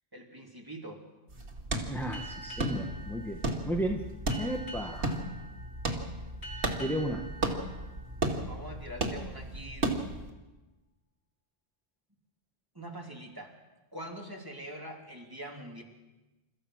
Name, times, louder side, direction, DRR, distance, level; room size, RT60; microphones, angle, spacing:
voice 1, 0.1-1.0 8.4-10.0 12.7-13.5 13.9-15.8, right 1 dB, 20° right, 0 dB, 3.0 m, -44 dB
sound 1, 1.3-10.3, right 2 dB, 80° right, 2.6 m, -35 dB
voice 2, 1.9-4.0 4.4-5.2 6.8-7.3, right 1 dB, ahead, 3 dB, 1.2 m, -34 dB
Boat Water vehicle, 2.1-9.2, right 2 dB, 70° left, 3.8 m, -47 dB
30.0 x 14.5 x 6.3 m, 1.1 s
omnidirectional pair, 1.1 m